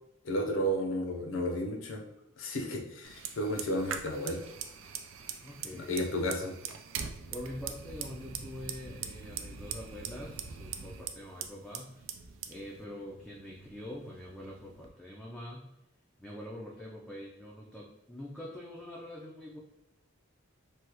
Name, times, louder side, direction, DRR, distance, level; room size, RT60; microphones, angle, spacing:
voice 1, 0.2-2.0 2.4-4.4 5.7-6.5, equal, 70° left, 2 dB, 0.6 m, -32 dB
Fire, 3.0-14.9, right 7 dB, 75° right, 0.3 m, -43 dB
voice 2, 5.4-6.2 6.9-15.7 16.2-19.6, left 1 dB, ahead, -4 dB, 0.4 m, -45 dB
3.3 x 2.3 x 2.9 m, 0.85 s
head